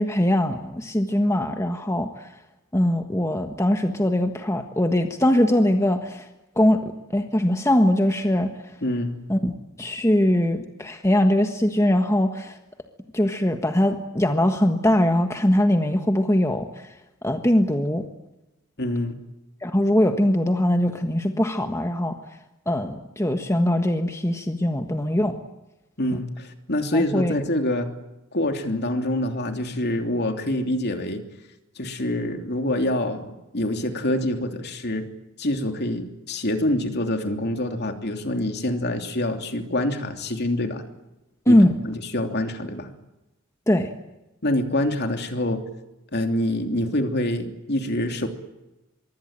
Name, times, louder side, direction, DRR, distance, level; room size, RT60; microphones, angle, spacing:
voice 1, 0.0-2.3 2.7-6.3 6.6-6.8 7.1-8.5 9.3-9.5 9.8-12.6 13.1-16.9 17.2-18.0 19.6-22.2 22.7-25.3 26.9-27.3 41.5-41.7 43.7-43.9, left 1 dB, 15° left, 5 dB, 1.5 m, -21 dB
voice 2, 8.8-9.1 18.8-19.2 26.0-27.9 28.3-31.2 31.7-35.1 35.4-40.8 41.5-41.6 41.8-42.9 44.4-45.6 46.1-48.3, left 1 dB, 50° left, 5 dB, 3.1 m, -26 dB
25.0 x 23.0 x 9.0 m, 0.97 s
head